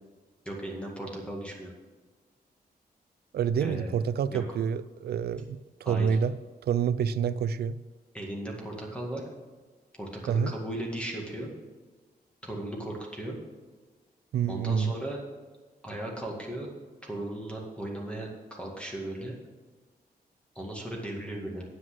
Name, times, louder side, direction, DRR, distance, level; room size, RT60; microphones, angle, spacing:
voice 1, 0.5-1.7 3.6-3.9 4.3-4.4 5.9-6.2 8.1-9.2 9.9-11.5 12.4-13.4 14.5-15.2 15.8-16.7 17.0-19.4 20.6-21.6, right 1 dB, 5° left, -1 dB, 2.0 m, -36 dB
voice 2, 3.3-6.4 6.6-7.8 10.3-10.5 14.3-14.9, right 7 dB, 80° right, 15 dB, 0.5 m, -28 dB
9.6 x 8.1 x 6.1 m, 1.4 s
wide cardioid pair, 135°, 16 cm